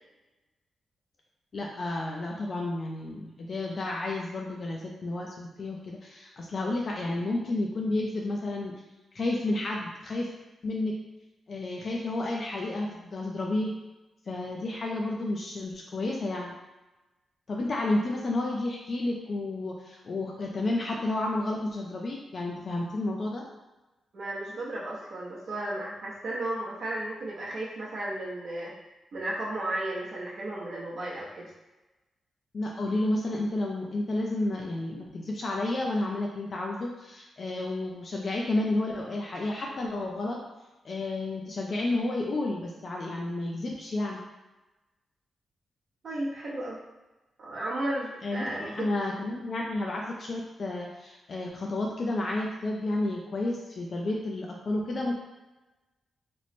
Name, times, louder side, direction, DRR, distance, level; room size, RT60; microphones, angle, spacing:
voice 1, 1.5-8.7 9.1-10.3 10.6-10.9 11.5-13.7 14.3-16.5 17.5-23.4 32.5-40.4 40.8-44.2 48.2-55.1, left 2 dB, 40° left, -1 dB, 0.3 m, -31 dB
voice 2, 24.1-28.7 29.1-31.5 46.0-46.8 47.4-48.9, right 1 dB, 55° right, -6 dB, 0.7 m, -34 dB
3.0 x 2.0 x 4.1 m, 1.1 s
wide cardioid pair, 155°, 0 cm